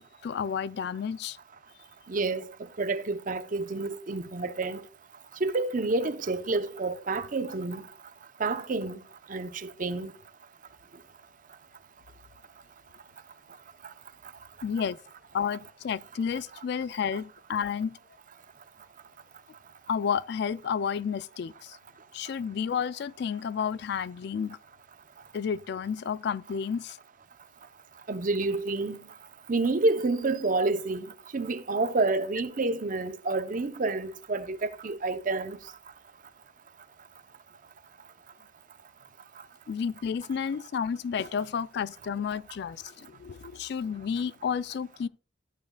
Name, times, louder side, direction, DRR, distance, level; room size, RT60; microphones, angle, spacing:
voice 1, 0.0-1.4 14.6-15.0 15.3-17.9 19.9-21.8 22.1-24.6 25.3-27.0 39.7-45.1, left 7 dB, 60° left, 0.3 m, -31 dB
voice 2, 2.1-2.5 2.8-4.8 5.4-7.9 8.4-9.0 9.3-10.1 17.1-17.2 28.1-29.0 29.5-35.6, right 3 dB, 45° right, 0.6 m, -29 dB
13.5 x 8.9 x 2.2 m
head